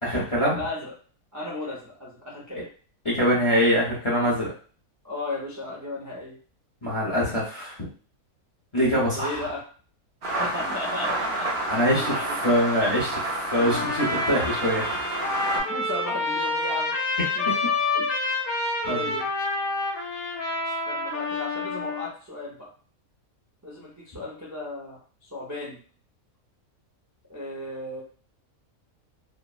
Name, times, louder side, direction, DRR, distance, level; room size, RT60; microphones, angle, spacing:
voice 1, 0.0-0.6 2.5-2.6 3.0-4.5 6.8-7.9 8.7-9.5 11.7-15.0 18.8-19.0, equal, 30° left, -6 dB, 0.6 m, -24 dB
voice 2, 0.5-0.9 1.3-2.7 5.0-6.4 9.1-9.6 10.3-11.5 11.7-12.5 15.5-17.4 17.9-18.1 18.9-19.3 20.9-22.7 23.6-25.0 25.3-25.8 27.3-28.0, left 2 dB, 25° right, -5 dB, 0.4 m, -35 dB
sound 1, 10.2-15.6, right 1 dB, 45° right, 0.8 m, -29 dB
Trumpet, 13.5-22.1, left 3 dB, 65° left, 1.0 m, -28 dB
3.1 x 2.0 x 2.3 m, 0.41 s
omnidirectional pair, 1.6 m